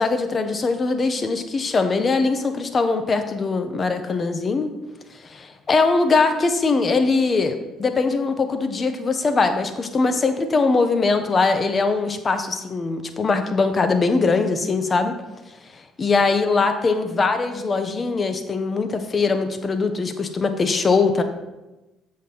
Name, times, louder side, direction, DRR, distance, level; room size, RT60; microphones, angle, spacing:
voice 1, 0.0-4.7 5.3-15.2 16.0-21.2, left 4 dB, 35° left, 7 dB, 0.8 m, -21 dB
7.5 x 5.2 x 4.2 m, 1.0 s
figure-of-eight pair, 50°, 0 cm